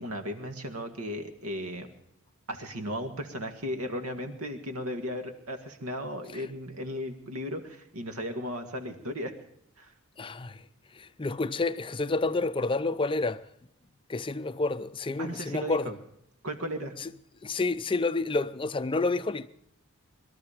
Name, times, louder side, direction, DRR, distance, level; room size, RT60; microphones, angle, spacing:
voice 1, 0.0-1.9 2.5-9.4 9.8-9.9 15.2-15.9 16.4-17.0, equal, 70° right, 1.9 m, -36 dB
voice 2, 10.2-10.6 10.9-13.4 14.1-15.9 17.0-17.1 17.4-19.5, left 3 dB, 25° left, 0.5 m, -29 dB
22.0 x 13.0 x 5.1 m
head